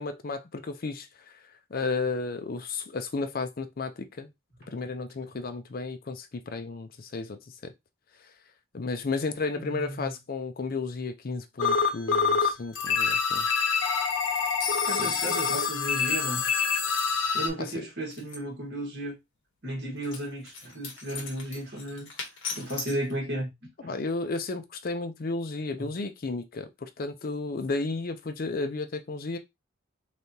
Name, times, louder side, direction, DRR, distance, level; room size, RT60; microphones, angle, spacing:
voice 1, 0.0-1.3 1.7-4.3 4.7-7.7 8.7-13.5 15.0-15.1 17.6-17.8 23.8-29.4, left 3 dB, 45° left, 0.5 m, -33 dB
voice 2, 9.6-10.1 14.9-16.5 17.3-19.1 19.6-22.1 22.5-23.5 23.8-24.0 25.8-25.9, right 1 dB, 55° right, 1.6 m, -34 dB
sound 1, 11.6-12.5 12.7-17.5, left 6 dB, 85° left, 0.8 m, -26 dB
sound 2, 18.1-18.4 20.0-23.1, left 4 dB, 65° left, 1.3 m, -39 dB
3.3 x 3.3 x 2.7 m
head